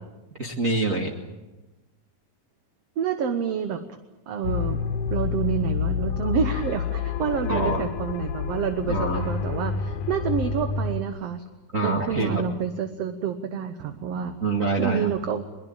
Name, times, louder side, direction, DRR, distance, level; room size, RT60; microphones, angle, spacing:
voice 1, 0.4-1.1 7.5-7.8 8.9-9.3 11.7-12.4 14.4-15.1, right 2 dB, 30° right, 0 dB, 2.0 m, -25 dB
voice 2, 3.0-3.8 4.3-11.4 11.8-14.4 14.8-15.5, right 7 dB, 60° right, 8 dB, 2.0 m, -28 dB
sound 1, 4.4-11.0, left 6 dB, 85° left, 2.7 m, -28 dB
22.5 x 21.5 x 8.9 m, 1.1 s
omnidirectional pair, 3.5 m